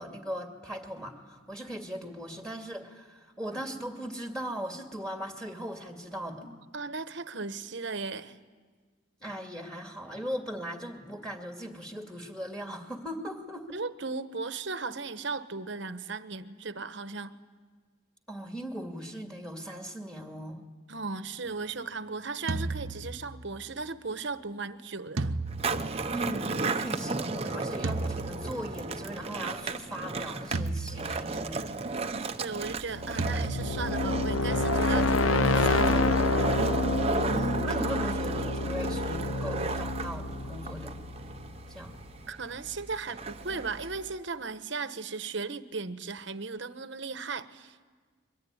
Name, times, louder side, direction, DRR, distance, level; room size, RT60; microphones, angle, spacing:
voice 1, 0.0-6.5 9.2-13.8 18.3-20.6 26.1-31.7 37.0-40.9 41.7-42.0, equal, 5° left, 3 dB, 2.3 m, -38 dB
voice 2, 6.4-8.4 13.7-17.4 20.9-25.3 32.4-36.2 42.3-47.8, right 4 dB, 60° right, 11 dB, 1.1 m, -36 dB
sound 1, 22.5-23.7 25.2-26.7 27.8-29.0 30.5-31.8 33.2-34.3, right 2 dB, 75° right, 0.9 m, -35 dB
Skateboard, 25.5-44.1, right 3 dB, 30° right, 0.8 m, -34 dB
sound 2, 32.8-41.7, left 3 dB, 80° left, 0.7 m, -28 dB
25.0 x 23.0 x 9.7 m, 1.5 s
head